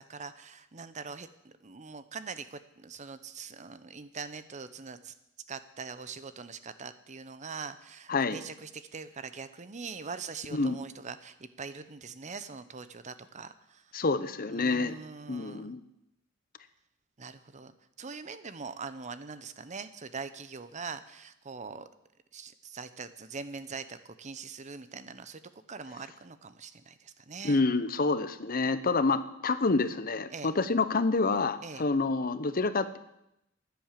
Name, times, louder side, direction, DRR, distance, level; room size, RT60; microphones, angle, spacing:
voice 1, 0.0-5.1 5.5-13.8 14.5-15.7 17.2-21.9 22.3-25.4 25.7-27.6 30.3-30.5 31.6-31.9, right 5 dB, 35° right, 12 dB, 0.8 m, -43 dB
voice 2, 8.1-8.4 10.5-10.8 13.9-14.9 15.3-15.8 27.4-33.0, left 3 dB, 45° left, 13 dB, 0.8 m, -28 dB
15.0 x 10.5 x 7.5 m, 0.85 s
head